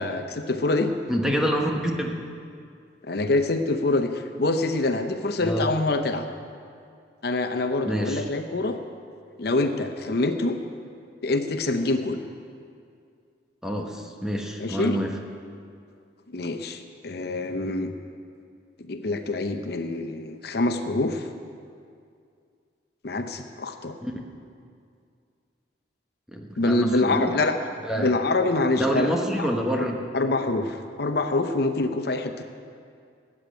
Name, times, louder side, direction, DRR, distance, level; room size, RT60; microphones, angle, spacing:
voice 1, 0.0-0.9 3.0-6.3 7.2-8.8 9.4-10.6 11.2-12.2 14.6-15.0 16.3-17.9 18.8-21.3 23.0-24.0 26.6-27.6 28.0-29.5 29.8-29.9 30.1-32.4, left 2 dB, 60° left, 7 dB, 0.8 m, -25 dB
voice 2, 1.1-1.7 2.0-2.2 5.4-5.7 7.9-8.2 13.6-15.1 24.0-24.1 26.3-27.3 27.9-28.2 28.8-30.0, equal, 5° right, 0 dB, 1.2 m, -27 dB
13.0 x 8.6 x 9.0 m, 2.3 s
head